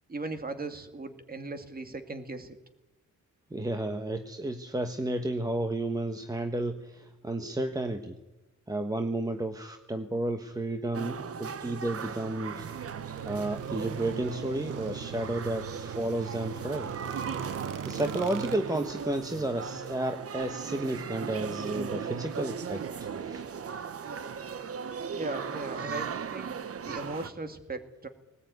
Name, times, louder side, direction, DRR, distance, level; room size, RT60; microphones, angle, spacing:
voice 1, 0.1-2.6 25.1-26.5 26.8-28.1, right 2 dB, 30° right, 8 dB, 2.3 m, -38 dB
voice 2, 3.5-8.1 8.7-12.7 13.3-16.9 17.8-23.4, right 1 dB, 10° right, 6 dB, 1.3 m, -32 dB
sound 1, 10.9-27.3, right 6 dB, 45° right, 1.1 m, -37 dB
sound 2, 12.6-18.6, right 10 dB, 80° right, 1.0 m, -41 dB
20.0 x 19.5 x 9.4 m, 0.98 s
wide cardioid pair, 140°, 31 cm